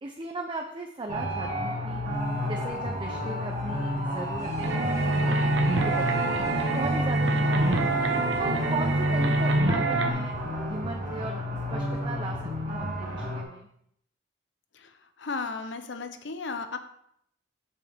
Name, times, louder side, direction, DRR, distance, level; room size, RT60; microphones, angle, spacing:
voice 1, 0.0-2.0 2.5-7.8 8.4-10.3 10.6-11.4 11.7-12.4 12.7-13.7, right 2 dB, 25° right, 2 dB, 0.6 m, -37 dB
sound 1, 1.1-13.4, left 1 dB, 45° right, 1.6 m, -31 dB
sound 2, 4.6-10.1, right 2 dB, 80° right, 0.9 m, -25 dB
voice 2, 15.2-16.8, left 4 dB, 70° left, 9 dB, 0.7 m, -34 dB
7.2 x 5.8 x 3.4 m, 0.71 s
head